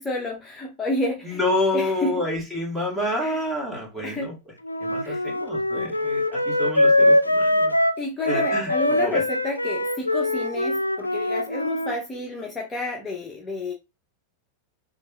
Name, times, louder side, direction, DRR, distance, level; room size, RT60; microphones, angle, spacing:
voice 1, 0.0-1.4 1.7-2.1 3.2-3.4 4.0-4.3 5.0-5.3 8.0-13.7, left 2 dB, 15° left, -1 dB, 0.7 m, -30 dB
voice 2, 1.2-4.3 4.8-7.7 8.2-9.2, left 1 dB, 10° right, -1 dB, 1.7 m, -28 dB
Wind instrument woodwind instrument, 4.6-11.9, left 1 dB, 85° left, 0.3 m, -22 dB
6.2 x 2.5 x 2.3 m, 0.27 s
figure-of-eight pair, 90°, 0 cm